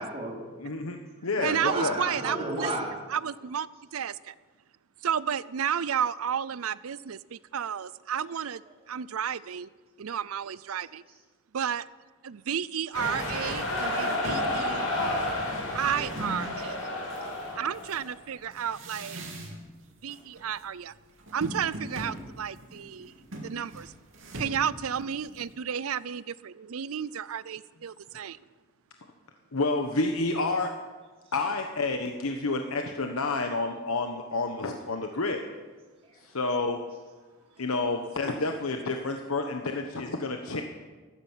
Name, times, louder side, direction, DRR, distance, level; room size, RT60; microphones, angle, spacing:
voice 1, 0.0-0.8 1.2-2.9 10.0-10.2 11.1-11.2 36.0-36.2 37.5-37.6, right 1 dB, 25° right, -2 dB, 3.7 m, -35 dB
voice 2, 0.6-1.9 29.5-30.7 31.3-35.4 36.2-36.8 37.6-40.6, left 3 dB, 85° left, 4 dB, 1.2 m, -29 dB
voice 3, 1.4-2.7 3.1-3.7 3.9-4.3 5.0-8.6 8.9-9.7 10.0-11.0 11.5-11.9 12.2-14.9 15.7-16.8 17.6-19.2 20.0-20.9 21.3-23.1 23.4-23.9 24.3-28.4, right 8 dB, 85° right, 19 dB, 0.5 m, -32 dB
sound 1, 12.9-18.1, left 1 dB, 70° left, 5.8 m, -31 dB
sound 2, 13.4-13.5 13.8-16.5 17.1-19.8 20.1-20.6 20.9-25.6, right 1 dB, 70° right, 3.0 m, -41 dB
14.0 x 13.5 x 7.4 m, 1.4 s
head